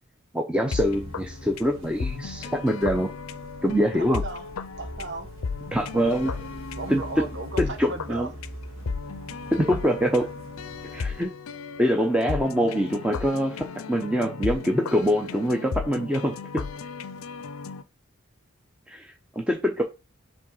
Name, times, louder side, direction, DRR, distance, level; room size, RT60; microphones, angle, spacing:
voice 1, 0.3-3.1 3.6-4.2 5.7-6.3 6.9-7.0 7.6-8.3 9.5-10.3 10.9-11.3 11.8-16.6 18.9-19.8, equal, 5° right, 0.6 m, -24 dB
sound 1, 0.6-17.8, left 5 dB, 90° left, 0.5 m, -35 dB
sound 2, 0.7-11.2, right 1 dB, 75° right, 1.5 m, -44 dB
voice 2, 4.0-4.5 4.8-5.3 5.8-8.3 9.9-10.1, right 3 dB, 55° right, 1.1 m, -37 dB
5.2 x 3.6 x 5.4 m
head